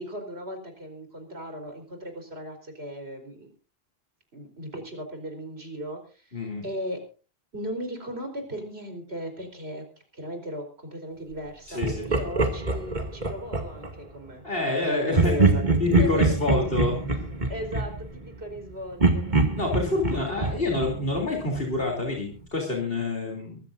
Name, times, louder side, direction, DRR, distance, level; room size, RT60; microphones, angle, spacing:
voice 1, 0.0-3.5 4.3-7.0 7.5-9.8 10.1-14.4 14.9-16.2 17.5-19.2, equal, 85° right, 4 dB, 4.5 m, -36 dB
voice 2, 6.3-6.7 11.7-12.1 14.4-15.3 15.8-17.2 19.5-23.6, left 3 dB, 65° left, 0 dB, 3.5 m, -27 dB
Laughter, 11.8-13.9 15.1-18.6 19.0-21.7, right 3 dB, 45° right, 2.5 m, -25 dB
23.0 x 14.5 x 2.6 m, 0.36 s
omnidirectional pair, 1.0 m